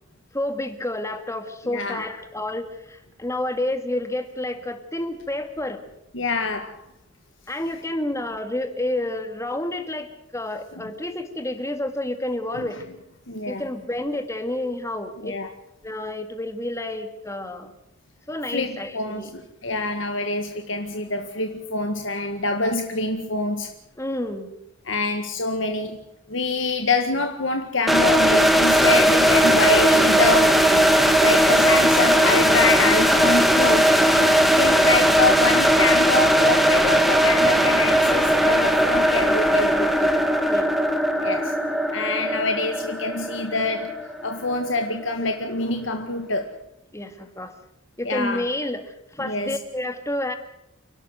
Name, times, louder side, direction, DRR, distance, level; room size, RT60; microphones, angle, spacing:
voice 1, 0.3-5.9 7.5-12.8 13.5-15.4 15.8-17.7 18.3-19.3 24.0-24.5 40.5-40.7 46.9-47.6 48.0-50.4, left 1 dB, 15° left, 1.9 m, -29 dB
voice 2, 1.6-2.0 6.1-6.8 12.5-12.7 13.3-13.6 15.2-15.5 18.5-23.7 24.9-26.0 26.3-30.7 31.2-33.9 34.5-40.1 41.2-41.5 41.9-43.9 44.2-46.5 48.0-48.5 49.2-49.6, left 3 dB, 70° left, 1.8 m, -26 dB
sound 1, 27.9-44.7, equal, ahead, 1.9 m, -18 dB
29.0 x 12.5 x 8.0 m
head